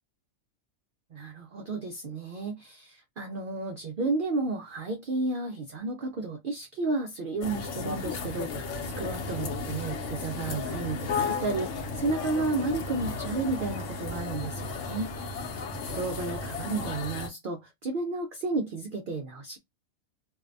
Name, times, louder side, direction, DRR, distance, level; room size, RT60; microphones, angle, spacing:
voice 1, 1.1-15.1 15.9-19.6, right 3 dB, 70° right, 0.5 m, -32 dB
sound 1, 7.4-17.3, left 4 dB, 65° left, 0.9 m, -34 dB
2.6 x 2.1 x 2.4 m
omnidirectional pair, 1.5 m